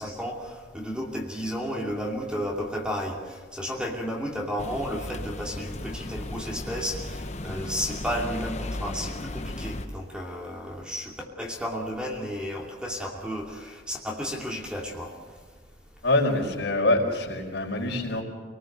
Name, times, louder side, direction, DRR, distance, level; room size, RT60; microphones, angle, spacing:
voice 1, 0.0-15.1, equal, 5° right, -1 dB, 2.7 m, -33 dB
sound 1, 4.6-9.9, left 1 dB, 35° left, 1.0 m, -35 dB
voice 2, 16.0-18.2, left 2 dB, 65° left, 1 dB, 4.7 m, -25 dB
26.5 x 19.0 x 6.7 m, 1.4 s
head